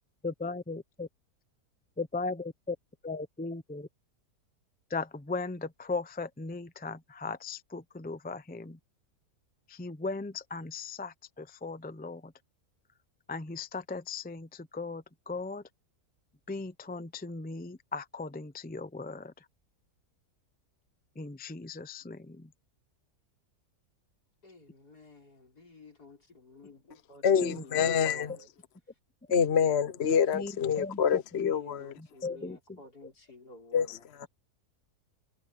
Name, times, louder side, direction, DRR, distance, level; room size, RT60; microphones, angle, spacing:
voice 1, 0.2-1.1 2.0-2.8 3.0-3.9 4.9-8.8 9.7-12.3 13.3-15.6 16.5-19.4 21.2-22.5 27.3-27.6 30.3-31.0 31.4-31.5 32.0-33.1, left 3 dB, 10° left, 0.4 m, -38 dB
voice 2, 24.4-28.5 31.4-33.9, left 1 dB, 75° left, 6.3 m, -52 dB
voice 3, 27.2-28.3 29.3-31.9 33.7-34.3, left 7 dB, 50° left, 1.0 m, -26 dB
omnidirectional pair, 1.7 m